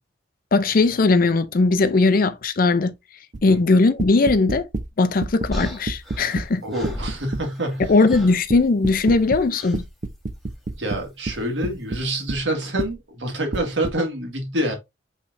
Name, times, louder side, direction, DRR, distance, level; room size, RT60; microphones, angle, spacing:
voice 1, 0.5-2.9 3.4-4.7 5.0-6.6 7.9-9.8, left 3 dB, 50° left, 0.5 m, -19 dB
sound 1, 3.3-3.6 4.0-4.9 5.2-6.5 6.8-7.4 7.8-9.5 9.7-12.4 12.8-12.9 13.5-13.9, right 2 dB, 40° right, 0.5 m, -29 dB
sound 2, 5.5-7.8 8.1-8.5 9.5-9.8 11.2-11.5, left 1 dB, ahead, 1.3 m, -35 dB
voice 2, 6.6-7.9 10.7-14.7, right 1 dB, 80° right, 1.7 m, -27 dB
5.5 x 3.3 x 2.6 m
head